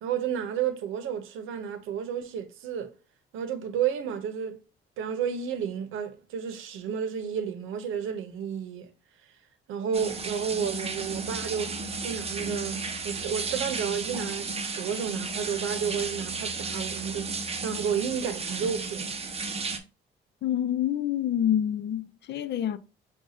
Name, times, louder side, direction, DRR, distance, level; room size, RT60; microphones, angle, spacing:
voice 1, 0.0-2.9 3.3-4.6 5.0-8.9 9.7-14.5 14.8-19.1, right 8 dB, 90° right, 0.7 m, -31 dB
sound 1, 9.9-19.8, right 4 dB, 30° right, 0.7 m, -34 dB
voice 2, 20.4-22.8, left 10 dB, 60° left, 0.5 m, -27 dB
6.3 x 2.3 x 2.6 m
cardioid pair, 90°, 20 cm